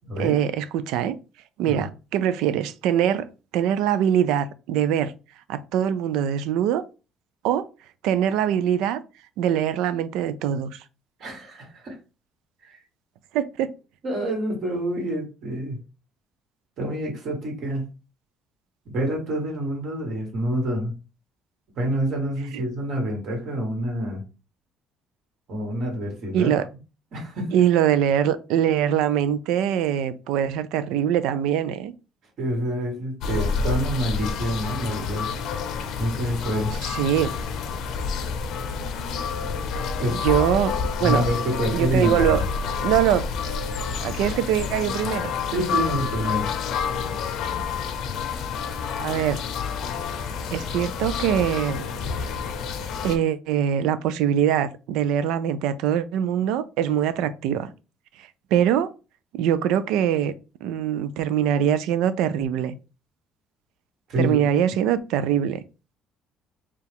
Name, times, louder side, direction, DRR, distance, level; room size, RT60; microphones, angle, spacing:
voice 1, 0.2-1.2 1.6-3.3 3.5-5.1 5.5-6.8 7.4-7.7 8.0-9.0 9.4-10.8 13.3-13.7 22.5-22.6 26.3-26.7 27.5-31.9 36.8-37.3 40.2-40.7 41.0-41.2 41.7-42.4 42.7-43.3 44.0-45.3 49.0-49.4 50.5-51.8 53.0-57.7 58.5-58.9 59.3-60.3 60.6-62.7 64.2-65.6, right 10 dB, 80° right, 0.4 m, -23 dB
voice 2, 11.2-12.0 12.6-12.8 14.0-15.8 16.8-17.9 18.9-20.9 21.8-24.2 25.5-26.5 27.1-27.5 32.4-35.4 35.9-36.7 40.0-40.3 41.0-42.4 45.5-46.5 64.1-64.4, right 1 dB, 50° right, 1.8 m, -27 dB
sound 1, 33.2-53.2, left 6 dB, 65° left, 0.6 m, -28 dB
4.6 x 2.4 x 3.5 m
cardioid pair, 140°, 0 cm